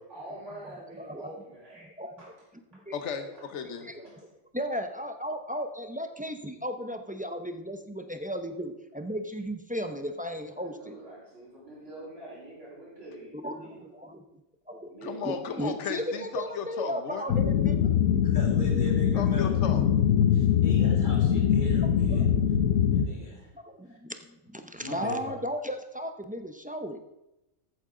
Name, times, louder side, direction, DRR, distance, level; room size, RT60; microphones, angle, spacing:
voice 1, 0.1-1.9 2.2-2.3 4.0-4.3 10.5-13.8 14.9-15.4, right 1 dB, 60° right, -6 dB, 4.9 m, -45 dB
voice 2, 0.6-1.3 2.0-2.2 2.7-2.9 3.6-4.2 4.5-11.0 13.3-14.4 14.7-14.9 15.2-18.0 22.1-22.2 23.1-23.3 23.5-27.0, equal, 10° right, 6 dB, 0.3 m, -35 dB
voice 3, 2.9-3.9 15.0-17.2 19.1-19.8, left 6 dB, 65° left, 7 dB, 1.3 m, -35 dB
sound 1, 17.3-23.1, left 8 dB, 85° left, 1.1 m, -23 dB
voice 4, 18.2-19.5 20.3-22.2 22.9-23.5 23.9-24.0 24.7-25.3, left 1 dB, 35° left, -2 dB, 3.0 m, -39 dB
14.5 x 8.6 x 3.8 m, 0.93 s
omnidirectional pair, 1.4 m